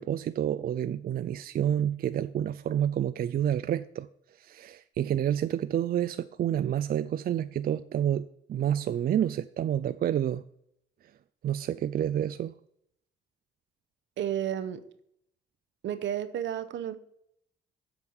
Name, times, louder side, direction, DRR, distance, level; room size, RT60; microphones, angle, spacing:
voice 1, 0.0-4.1 4.4-10.4 11.4-12.5, right 10 dB, 50° right, 13 dB, 0.4 m, -29 dB
voice 2, 14.2-14.8 15.8-17.0, right 10 dB, 70° right, 12 dB, 0.9 m, -32 dB
8.0 x 5.3 x 7.1 m, 0.73 s
cardioid pair, 90°, 20 cm